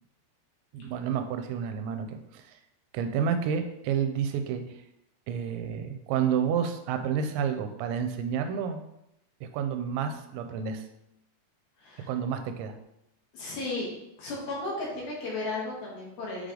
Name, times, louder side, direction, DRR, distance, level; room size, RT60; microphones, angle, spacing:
voice 1, 0.7-2.6 2.9-4.6 5.3-8.8 9.5-10.8 12.1-12.7, right 7 dB, 85° right, 7 dB, 2.9 m, -30 dB
voice 2, 11.8-12.1 13.3-13.9 14.2-16.5, left 2 dB, 65° left, -4 dB, 3.1 m, -34 dB
8.6 x 3.4 x 3.7 m, 0.83 s
omnidirectional pair, 5.1 m